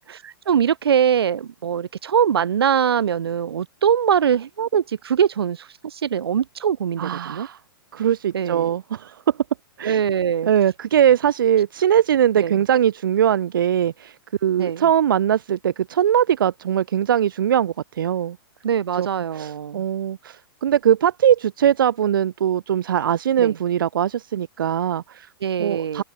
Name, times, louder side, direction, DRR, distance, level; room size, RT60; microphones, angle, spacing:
voice 1, 0.0-7.5 8.3-8.8 9.8-10.5 12.4-12.6 14.6-14.9 18.6-19.8 23.4-23.6 25.4-26.0, right 8 dB, 85° right, 5.7 m, -22 dB
voice 2, 7.0-7.6 7.9-9.1 9.8-10.0 10.5-14.1 14.4-18.4 19.0-19.1 19.4-20.4 20.6-25.3 25.6-26.0, right 9 dB, 60° right, 3.8 m, -20 dB
hypercardioid pair, 180°, 13 cm